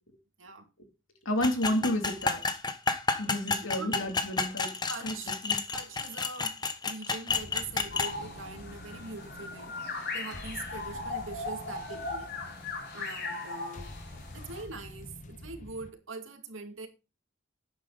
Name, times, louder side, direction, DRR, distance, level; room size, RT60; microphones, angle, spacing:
voice 1, 1.2-2.4 3.2-4.7 5.0-5.1 5.4-5.6, left 1 dB, 85° left, 3.1 m, -30 dB
sound 1, 1.4-8.1, left 4 dB, 20° left, 1.2 m, -31 dB
voice 2, 3.5-4.0 4.9-5.3 5.7-6.6 6.8-9.8 10.1-12.3 12.9-13.9 14.3-16.9, right 3 dB, 75° right, 2.5 m, -43 dB
sound 2, 7.3-15.9, left 1 dB, 40° left, 1.0 m, -47 dB
sound 3, 7.9-14.6, left 3 dB, 55° left, 4.8 m, -38 dB
11.5 x 9.2 x 4.1 m
head